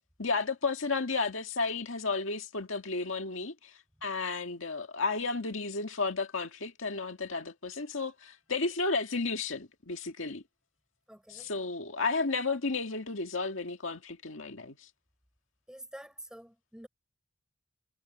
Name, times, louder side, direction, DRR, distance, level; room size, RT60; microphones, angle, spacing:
voice 1, 0.2-3.7 4.0-10.4 11.3-14.8, left 4 dB, 70° left, 2.0 m, -33 dB
voice 2, 11.1-11.5 15.7-16.9, right 1 dB, 5° right, 5.8 m, -48 dB
head